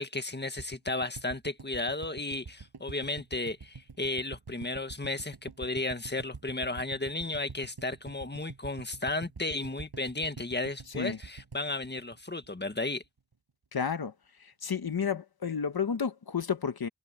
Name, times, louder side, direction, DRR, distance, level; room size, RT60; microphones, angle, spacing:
voice 1, 0.0-13.0, left 2 dB, 25° left, 1.8 m, -34 dB
sound 1, 0.6-12.7 13.0-13.1 13.3-13.4, right 4 dB, 75° right, 6.7 m, -46 dB
voice 2, 10.9-11.2 13.7-16.9, left 6 dB, 70° left, 1.3 m, -32 dB
wide cardioid pair, 60°, 38 cm